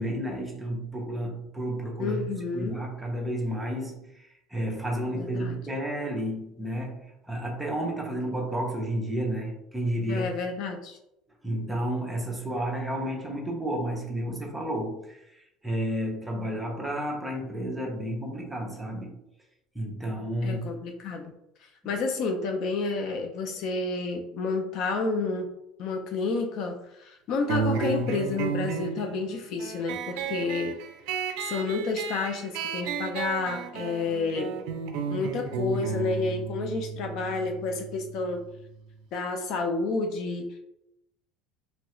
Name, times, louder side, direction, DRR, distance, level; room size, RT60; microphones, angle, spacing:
voice 1, 0.0-10.3 11.4-19.2 19.7-20.6, right 1 dB, 5° right, -1 dB, 0.6 m, -31 dB
voice 2, 2.0-2.8 5.1-5.6 10.1-11.0 20.4-21.3 21.6-25.5 25.8-30.8 31.4-34.6 35.1-38.5 39.1-40.6, left 3 dB, 45° left, 5 dB, 0.3 m, -30 dB
sound 1, 27.5-38.6, right 5 dB, 70° right, 0.4 m, -33 dB
3.1 x 2.3 x 2.9 m, 0.83 s
cardioid pair, 165°, 0 cm